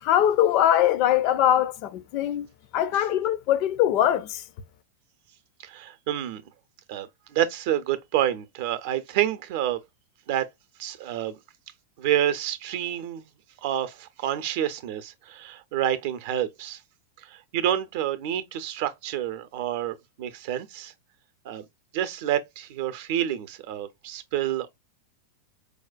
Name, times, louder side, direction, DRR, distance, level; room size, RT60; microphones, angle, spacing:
voice 1, 0.0-2.5 2.7-4.4, left 11 dB, 40° left, 0.4 m, -22 dB
voice 2, 5.6-6.4 6.9-9.8 10.3-10.5 10.8-11.4 12.0-13.3 13.6-16.8 17.2-20.9 21.4-21.7 21.9-24.7, right 11 dB, 50° right, 0.6 m, -28 dB
4.7 x 2.2 x 2.4 m
figure-of-eight pair, 90°, 0 cm